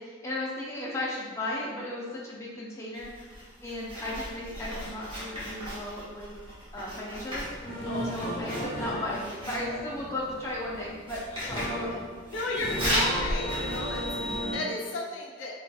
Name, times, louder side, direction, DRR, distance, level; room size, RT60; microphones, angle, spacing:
voice 1, 0.0-3.1 3.6-6.3 6.7-7.5 8.0-12.1 14.2-14.7, left 1 dB, 15° left, -5 dB, 0.3 m, -35 dB
Writing, 2.9-14.6, equal, 30° right, 0.9 m, -36 dB
sound 1, 7.3-14.6, equal, 30° left, 0.8 m, -35 dB
voice 2, 7.8-8.2 11.3-11.5 12.3-15.6, left 2 dB, 80° left, -2 dB, 0.5 m, -34 dB
2.6 x 2.4 x 2.2 m, 1.5 s
head